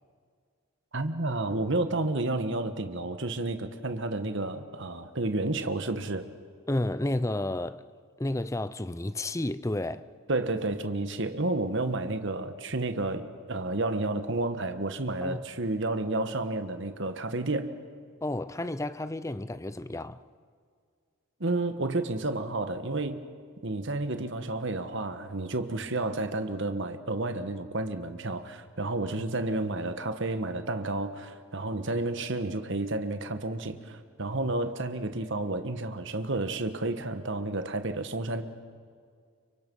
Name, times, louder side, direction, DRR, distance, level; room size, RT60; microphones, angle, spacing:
voice 1, 0.9-6.3 10.3-17.7 21.4-23.2 23.6-38.4, right 2 dB, 55° right, 1.4 m, -31 dB
voice 2, 6.7-7.9 8.2-10.1 15.2-15.4 18.2-20.2 34.4-34.5, left 1 dB, 15° left, 0.5 m, -31 dB
30.0 x 25.0 x 5.5 m
head